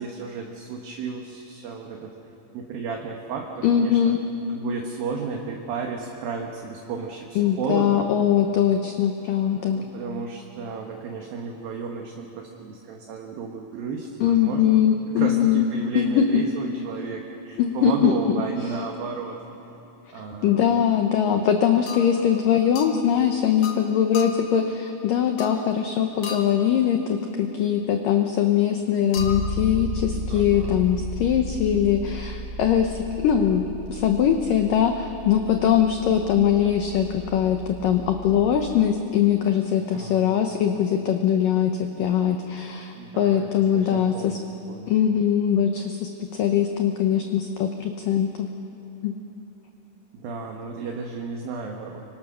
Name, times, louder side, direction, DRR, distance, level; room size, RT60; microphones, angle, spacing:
voice 1, 0.0-2.1 2.5-4.1 4.5-8.1 9.3-14.8 15.2-19.4 20.1-20.8 30.3-30.8 39.8-40.5 43.0-44.4 44.7-44.9 50.1-52.0, right 5 dB, 65° right, 1 dB, 2.7 m, -33 dB
voice 2, 3.6-4.2 7.4-9.8 14.2-15.7 16.0-16.4 17.6-18.1 20.4-44.4 44.9-48.5 49.0-49.2, left 9 dB, 80° left, 5 dB, 1.9 m, -22 dB
sound 1, 20.5-20.7 21.9-22.2 22.8-23.0 23.6-23.8 24.1-24.5 25.4-25.7 26.2-26.7 29.1-29.6, left 6 dB, 55° left, 2.3 m, -36 dB
Bass guitar, 29.2-39.0, equal, 35° right, 1.4 m, -35 dB
25.0 x 24.5 x 6.3 m, 2.9 s
omnidirectional pair, 5.2 m